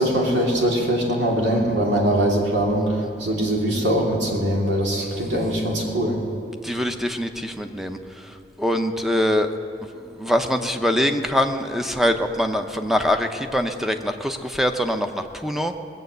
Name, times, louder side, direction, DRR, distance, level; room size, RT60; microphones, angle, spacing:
voice 1, 0.0-2.9 3.2-6.2, right 1 dB, 90° right, -2 dB, 2.8 m, -22 dB
voice 2, 6.6-9.5 10.0-15.7, equal, ahead, 6 dB, 0.6 m, -23 dB
20.0 x 7.6 x 8.0 m, 2.6 s
head